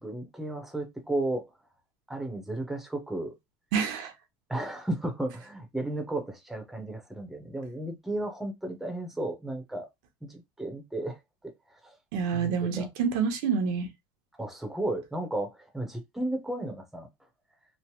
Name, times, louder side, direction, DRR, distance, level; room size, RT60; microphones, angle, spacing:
voice 1, 0.0-1.5 2.1-3.3 4.5-9.9 10.2-11.2 11.4-11.5 11.8-11.9 12.3-12.5 12.8-12.9 14.3-17.1, right 1 dB, ahead, 0.6 m, -34 dB
voice 2, 3.7-4.1 12.1-13.9, right 6 dB, 75° right, 0.8 m, -27 dB
3.1 x 2.0 x 2.8 m
cardioid pair, 150°, 10 cm